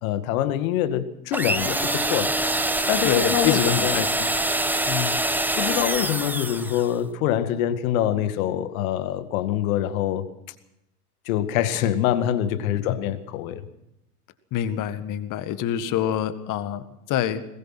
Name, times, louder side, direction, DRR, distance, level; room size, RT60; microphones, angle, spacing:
voice 1, 0.0-2.3 2.9-4.0 5.6-10.3 11.3-13.6, left 11 dB, 60° left, 11 dB, 2.0 m, -25 dB
sound 1, 1.3-6.9, right 1 dB, 5° right, 0.9 m, -25 dB
voice 2, 3.0-4.3 4.9-5.2 12.9-13.0 14.5-17.5, left 10 dB, 40° left, 12 dB, 1.9 m, -26 dB
21.5 x 20.5 x 6.1 m, 0.84 s
hypercardioid pair, 90°, 46 cm